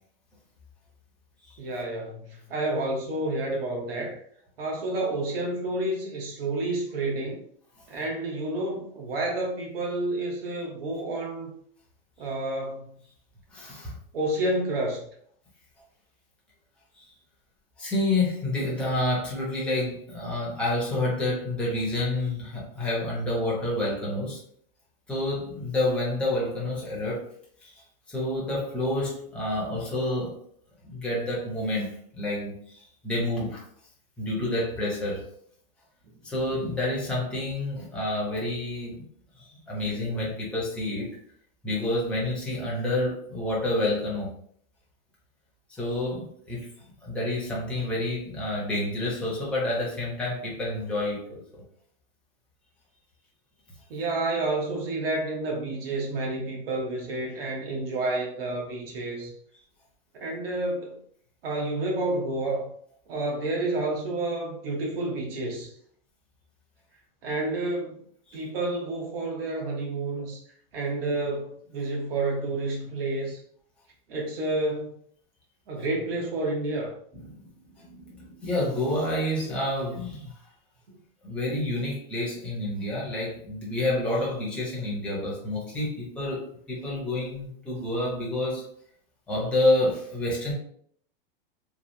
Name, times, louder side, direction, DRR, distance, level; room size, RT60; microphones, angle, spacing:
voice 1, 1.6-4.2 4.6-7.4 7.9-11.5 12.2-13.0 14.1-15.1 39.7-40.1 53.9-59.3 60.2-61.0 61.4-62.7 63.1-65.7 67.2-68.0 68.3-70.4 70.7-73.4 74.1-75.0 75.7-76.9 79.4-79.5 80.9-81.0, right 2 dB, 75° right, -1 dB, 1.1 m, -30 dB
voice 2, 13.5-14.0 17.0-17.1 17.8-24.4 25.1-27.3 27.6-27.8 28.1-30.4 30.8-33.6 34.2-35.3 36.2-39.0 39.4-41.1 41.6-44.3 45.7-46.7 47.0-51.6 68.3-68.4 77.1-77.5 77.8-80.4 81.2-88.6 89.3-90.5, left 1 dB, 5° left, -5 dB, 0.7 m, -29 dB
3.2 x 2.3 x 2.6 m, 0.62 s
supercardioid pair, 155°, 29 cm